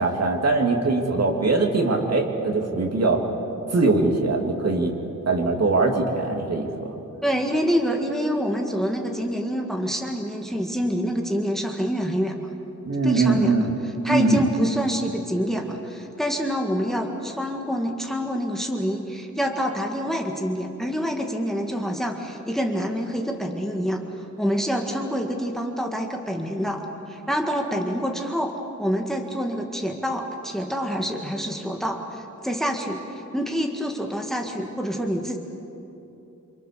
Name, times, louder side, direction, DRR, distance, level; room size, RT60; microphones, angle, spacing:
voice 1, 0.0-3.2 3.7-4.9 5.3-6.9 12.9-13.8 14.1-14.5, right 3 dB, 55° right, 2 dB, 2.9 m, -21 dB
voice 2, 7.2-12.5 13.0-13.6 14.0-24.0 24.4-35.4, equal, ahead, 2 dB, 1.8 m, -27 dB
28.0 x 25.5 x 6.9 m, 3.0 s
wide cardioid pair, 140°, 31 cm